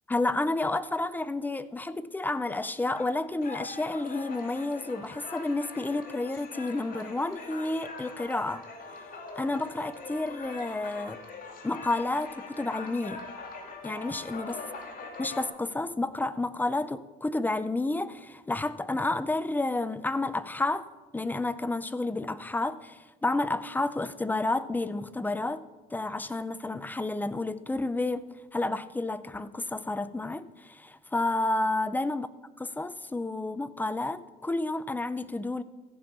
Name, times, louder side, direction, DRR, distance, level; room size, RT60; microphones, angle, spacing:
voice 1, 0.1-8.6 9.4-11.2 11.6-13.2 13.8-14.6 15.2-20.9 21.1-25.7 25.9-32.3 32.6-35.6, left 2 dB, 10° left, 0.5 m, -30 dB
sound 1, 3.0-15.5, left 3 dB, 55° left, 2.0 m, -42 dB
14.5 x 5.3 x 7.1 m
cardioid pair, 110°, 17 cm